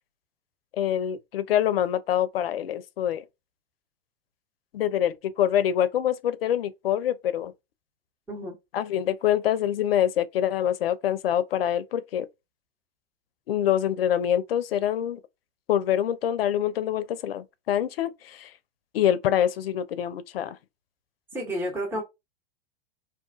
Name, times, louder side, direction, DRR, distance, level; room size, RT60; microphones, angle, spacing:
voice 1, 0.8-3.2 4.7-7.5 8.7-12.3 13.5-15.2 15.7-18.5 18.9-20.6, left 10 dB, 75° left, 0.5 m, -25 dB
voice 2, 21.3-22.0, equal, 10° right, 1.0 m, -30 dB
2.6 x 2.3 x 2.3 m
hypercardioid pair, 105°, 29 cm